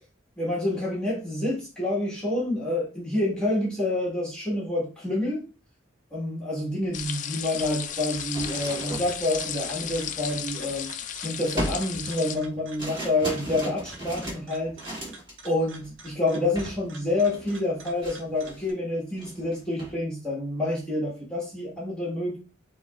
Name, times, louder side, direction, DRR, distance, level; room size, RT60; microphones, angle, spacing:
voice 1, 0.4-5.4 6.1-10.9 11.2-14.8 15.4-22.4, left 2 dB, 5° left, -5 dB, 1.4 m, -28 dB
sound 1, 6.9-12.4, left 9 dB, 40° left, 0.4 m, -34 dB
sound 2, 6.9-7.0 7.4-11.0 11.6-15.5 15.8-16.1 16.6-16.8 17.1-18.7 19.1-20.0, right 1 dB, 25° right, 2.2 m, -37 dB
sound 3, 7.8-18.7, right 2 dB, 80° right, 1.3 m, -48 dB
7.5 x 3.0 x 2.3 m, 0.34 s
head